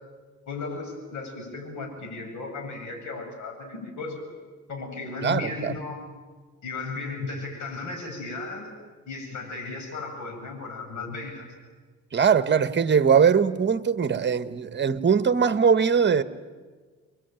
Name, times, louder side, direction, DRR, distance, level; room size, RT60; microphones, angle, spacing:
voice 1, 0.5-4.3 4.7-6.1 6.6-8.7 9.1-11.5, left 3 dB, 75° left, 7.7 m, -35 dB
voice 2, 5.2-5.7 12.1-16.2, right 6 dB, 35° right, 1.3 m, -21 dB
27.5 x 22.5 x 9.2 m
cardioid pair, 90°, 30 cm